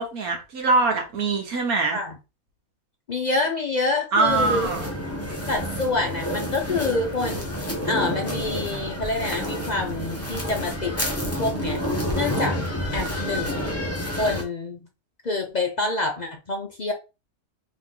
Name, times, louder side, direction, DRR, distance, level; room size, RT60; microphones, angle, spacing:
voice 1, 0.0-2.0 4.1-4.9, right 3 dB, 80° right, 1.6 m, -23 dB
voice 2, 3.1-4.7 5.5-7.5 7.8-11.0 11.4-11.8 12.1-12.6 12.9-13.7 14.2-14.9 15.2-16.9, left 3 dB, 50° left, 0.5 m, -27 dB
sound 1, 4.2-14.4, equal, 10° left, 1.0 m, -29 dB
3.7 x 3.1 x 3.7 m
omnidirectional pair, 1.5 m